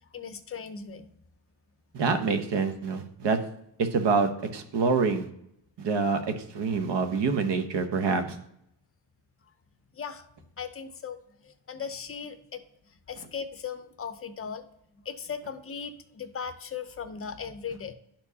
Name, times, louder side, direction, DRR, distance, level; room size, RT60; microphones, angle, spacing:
voice 1, 0.1-1.1 9.9-10.3 10.6-11.2 11.4-12.6 13.1-14.7 15.0-17.9, left 6 dB, 30° left, 9 dB, 0.6 m, -38 dB
voice 2, 1.9-3.4 3.8-5.3 5.8-8.4, right 4 dB, 60° right, 7 dB, 1.0 m, -26 dB
12.0 x 4.4 x 2.8 m, 0.76 s
cardioid pair, 120°, 47 cm